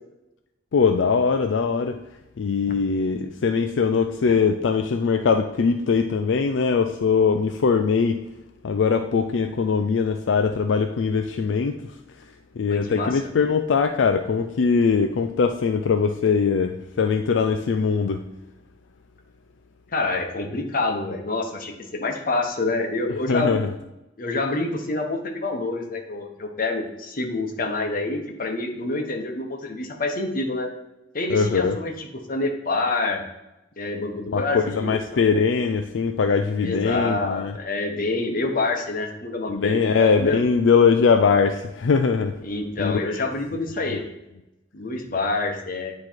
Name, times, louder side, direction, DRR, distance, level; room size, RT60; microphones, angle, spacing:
voice 1, 0.7-2.0 2.4-8.2 8.6-11.8 12.6-18.2 23.3-23.7 31.3-31.8 34.3-37.5 39.5-42.4 42.8-43.2 43.9-44.0, left 5 dB, 80° left, 6 dB, 0.4 m, -21 dB
voice 2, 12.7-13.2 19.9-23.6 24.2-30.7 31.1-33.2 33.8-35.2 36.6-40.4 42.4-44.0 44.7-45.9, left 2 dB, 50° left, 3 dB, 1.0 m, -27 dB
9.5 x 3.2 x 4.4 m, 0.93 s
head